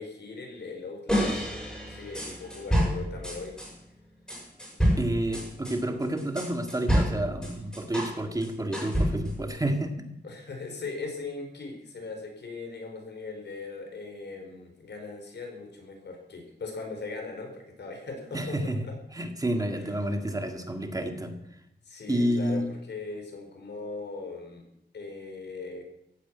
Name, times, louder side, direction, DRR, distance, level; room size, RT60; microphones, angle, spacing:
voice 1, 0.0-1.4 1.9-3.6 10.2-18.9 19.8-19.9 21.9-24.6 24.9-25.8, left 3 dB, 85° left, 3 dB, 4.7 m, -39 dB
sound 1, 1.1-3.7 4.3-8.2 8.4-9.4, equal, 5° left, 6.7 m, -28 dB
voice 2, 5.0-10.0 18.3-18.9 19.1-21.4 22.1-22.7, right 1 dB, 20° right, 5 dB, 1.9 m, -29 dB
15.0 x 10.0 x 9.0 m, 0.81 s
wide cardioid pair, 160°, 18 cm